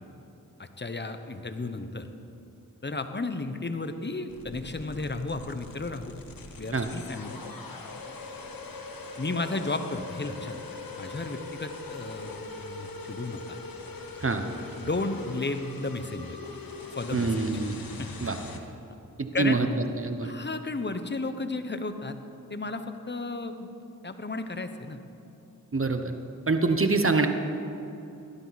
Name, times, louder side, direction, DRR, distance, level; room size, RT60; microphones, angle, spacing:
voice 1, 0.6-2.1 2.8-6.1 6.6-7.4 9.2-10.6 11.0-13.6 14.8-16.4 16.9-17.4 17.9-18.1 19.3-19.6 20.2-22.1 22.5-25.0, left 3 dB, 30° left, 8 dB, 1.1 m, -33 dB
sound 1, 4.3-18.6, left 4 dB, 80° left, 1.3 m, -42 dB
voice 2, 17.1-17.8 18.2-18.4 19.2-19.7 20.0-20.3 25.7-26.1 26.5-27.3, right 3 dB, 40° right, 7 dB, 1.1 m, -25 dB
16.5 x 12.0 x 4.2 m, 2.8 s
cardioid pair, 40°, 34 cm